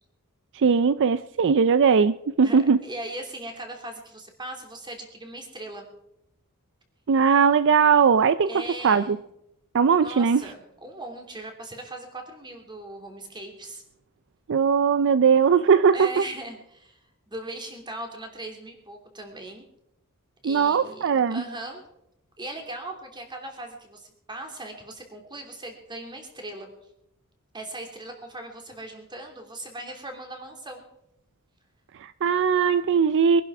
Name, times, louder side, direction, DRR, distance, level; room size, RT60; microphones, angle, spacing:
voice 1, 0.5-2.8 7.1-8.5 8.8-9.2 9.7-10.4 14.5-16.2 20.4-21.4 32.0-33.4, right 6 dB, 55° right, 14 dB, 0.4 m, -19 dB
voice 2, 2.4-5.9 8.5-9.1 10.0-13.8 15.9-17.0 17.3-19.7 20.4-21.0 21.3-21.8 22.4-26.7 27.5-30.8, right 2 dB, 20° right, 3 dB, 3.0 m, -39 dB
23.0 x 11.0 x 4.8 m, 0.81 s
head